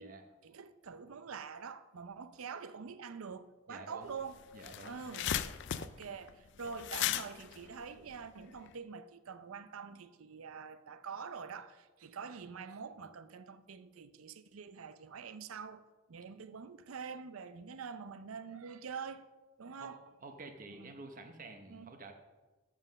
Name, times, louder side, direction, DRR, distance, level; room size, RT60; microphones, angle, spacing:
voice 1, 0.4-4.4 4.8-15.8 16.1-19.2 19.6-20.0 20.7-20.9 21.7-22.0, right 6 dB, 80° right, 0.6 m, -46 dB
voice 2, 3.7-4.1 4.5-5.0 19.8-22.1, right 2 dB, 40° right, 0.8 m, -50 dB
sound 1, 4.1-4.2 4.4-8.7, left 10 dB, 55° left, 0.4 m, -37 dB
7.6 x 7.4 x 6.5 m
head